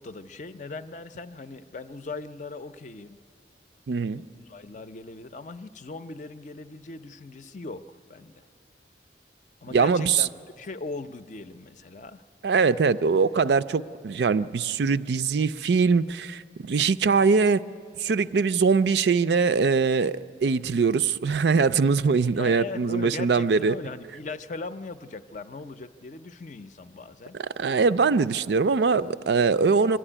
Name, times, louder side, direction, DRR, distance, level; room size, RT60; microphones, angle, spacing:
voice 1, 0.0-3.2 4.4-8.5 9.6-10.3 10.6-12.2 22.3-27.4, left 3 dB, 45° left, 11 dB, 0.5 m, -39 dB
voice 2, 3.9-4.2 9.7-10.3 12.4-17.6 18.0-23.8 27.3-30.0, right 5 dB, 70° right, 13 dB, 0.4 m, -22 dB
23.5 x 13.5 x 9.9 m, 2.4 s
head